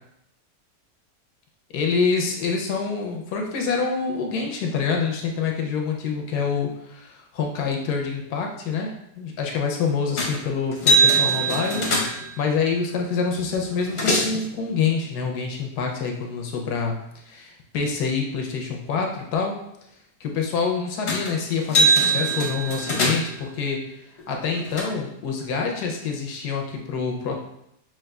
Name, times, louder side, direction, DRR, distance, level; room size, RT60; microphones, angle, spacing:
voice 1, 1.7-11.9 12.1-19.6 20.2-23.8 24.3-27.4, left 5 dB, 75° left, 1 dB, 1.1 m, -26 dB
sound 1, 10.2-10.4 10.7-12.3 13.3-13.4 13.7-14.4 21.1-21.3 21.6-23.4 24.2-24.8, right 2 dB, 50° left, 0.9 m, -22 dB
5.8 x 2.6 x 2.2 m, 0.77 s
omnidirectional pair, 1.8 m